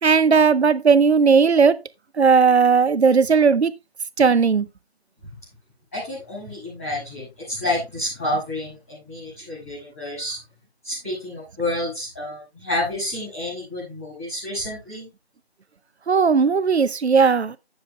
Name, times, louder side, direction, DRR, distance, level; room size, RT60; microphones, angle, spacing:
voice 1, 0.0-1.8 2.2-3.7 4.2-4.7 16.1-17.6, right 5 dB, 85° right, 0.7 m, -16 dB
voice 2, 5.9-10.4 10.8-15.1, left 1 dB, 15° left, 5.7 m, -29 dB
15.0 x 7.1 x 2.3 m
figure-of-eight pair, 180°, 32 cm